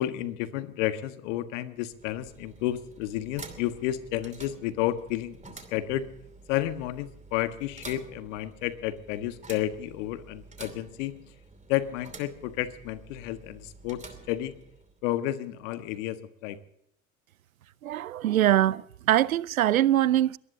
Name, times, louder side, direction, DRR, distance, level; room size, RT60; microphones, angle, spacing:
voice 1, 0.0-6.1 6.5-11.1 11.7-14.6 15.0-16.6, left 13 dB, 60° left, 1.6 m, -31 dB
sound 1, 1.8-15.1, right 3 dB, 15° right, 2.7 m, -49 dB
voice 2, 17.8-20.4, right 12 dB, 85° right, 0.6 m, -23 dB
22.5 x 18.5 x 2.8 m
hypercardioid pair, 80°, 41 cm